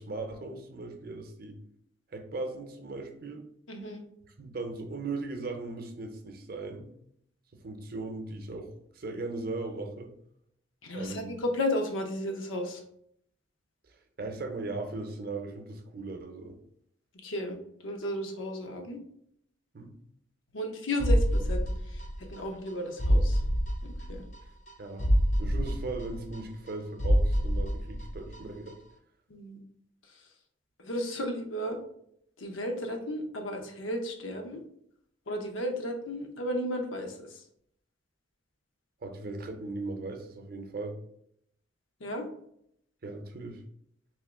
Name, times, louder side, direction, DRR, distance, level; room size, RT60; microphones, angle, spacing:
voice 1, 0.0-1.6 2.1-3.5 4.4-6.9 7.5-10.1 10.9-11.4 13.9-16.6 19.7-19.9 24.8-25.1 25.4-28.8 39.0-40.9 43.0-43.6, right 3 dB, 50° right, 4 dB, 0.6 m, -38 dB
voice 2, 3.7-4.0 10.8-12.8 17.2-17.6 17.8-19.0 20.5-22.0 22.3-23.4 23.8-24.2 29.3-29.6 30.8-31.8 32.4-34.6 35.3-37.1 42.0-42.3, left 1 dB, 85° left, 4 dB, 0.7 m, -34 dB
sound 1, 21.0-22.4 22.7-22.8 23.0-24.4 24.7-24.8 25.0-26.7 27.0-28.4 28.7-28.8, equal, 40° left, 0.4 m, -26 dB
3.6 x 2.9 x 3.5 m, 0.71 s
head